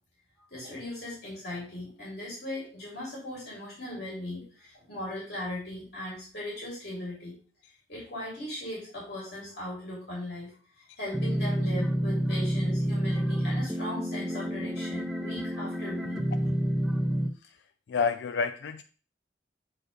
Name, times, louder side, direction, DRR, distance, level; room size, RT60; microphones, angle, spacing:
voice 1, 0.5-7.3 7.9-16.2, left 1 dB, 60° left, -6 dB, 3.2 m, -38 dB
sound 1, 11.1-17.3, equal, ahead, 0.5 m, -29 dB
voice 2, 17.9-18.8, left 5 dB, 80° left, 8 dB, 0.4 m, -29 dB
8.0 x 4.2 x 3.3 m, 0.39 s
head